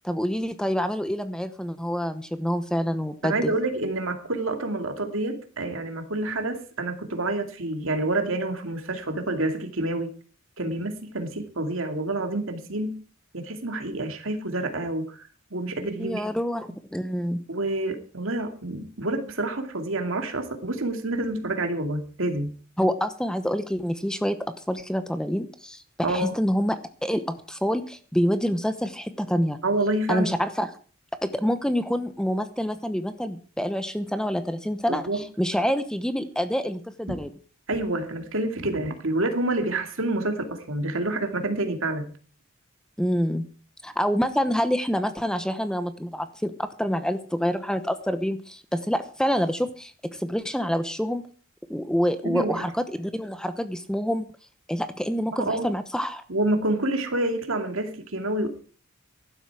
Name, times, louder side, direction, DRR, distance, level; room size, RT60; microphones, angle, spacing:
voice 1, 0.0-3.5 16.0-17.4 22.8-29.6 30.1-30.7 31.2-37.3 43.0-43.4 43.8-51.2 51.7-54.3 54.7-56.2, equal, 5° left, 0.9 m, -27 dB
voice 2, 3.2-10.1 10.6-13.0 13.3-16.2 17.5-22.5 26.0-26.3 29.6-30.3 34.9-35.2 37.1-37.2 37.7-42.1 52.2-52.7 55.3-55.7 56.3-58.5, right 2 dB, 65° right, 2.5 m, -28 dB
15.5 x 12.0 x 4.8 m
head